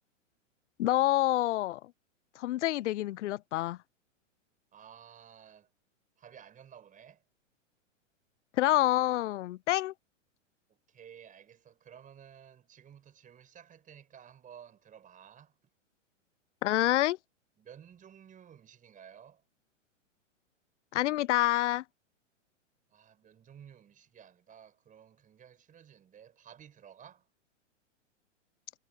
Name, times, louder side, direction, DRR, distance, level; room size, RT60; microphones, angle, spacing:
voice 1, 0.8-1.8 2.4-3.8 8.6-9.9 16.6-17.2 20.9-21.8, left 16 dB, 65° left, 0.5 m, -27 dB
voice 2, 4.7-5.7 6.2-7.2 10.7-15.5 17.6-19.4 22.9-27.3, right 8 dB, 20° right, 4.8 m, -54 dB
hypercardioid pair, 120°, 38 cm